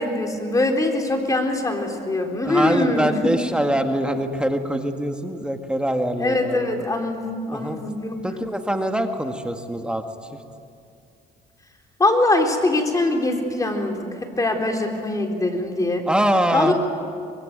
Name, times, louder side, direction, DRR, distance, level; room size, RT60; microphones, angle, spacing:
voice 1, 0.0-3.3 6.2-8.2 12.0-16.0 16.5-16.7, left 2 dB, 20° left, 3 dB, 3.8 m, -23 dB
voice 2, 2.4-6.7 7.5-7.9 8.2-10.0 16.1-16.7, right 1 dB, 5° right, 5 dB, 1.8 m, -23 dB
24.5 x 21.5 x 9.4 m, 2.3 s
cardioid pair, 110°, 17 cm